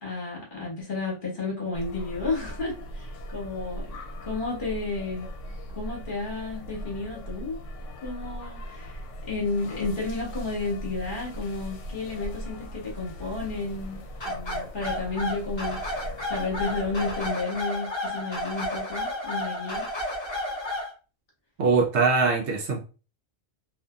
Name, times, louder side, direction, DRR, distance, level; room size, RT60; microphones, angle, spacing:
voice 1, 0.0-3.9 4.2-5.3 5.7-7.6 8.0-9.0 9.3-16.0 16.3-19.9, left 3 dB, 45° left, -3 dB, 1.0 m, -32 dB
sound 1, 1.7-17.3, equal, 75° left, 0.9 m, -39 dB
sound 2, 14.2-20.9, left 1 dB, 25° left, 0.8 m, -32 dB
voice 2, 21.6-22.8, right 4 dB, 70° right, 2 dB, 0.8 m, -22 dB
2.5 x 2.5 x 2.3 m, 0.33 s
omnidirectional pair, 1.3 m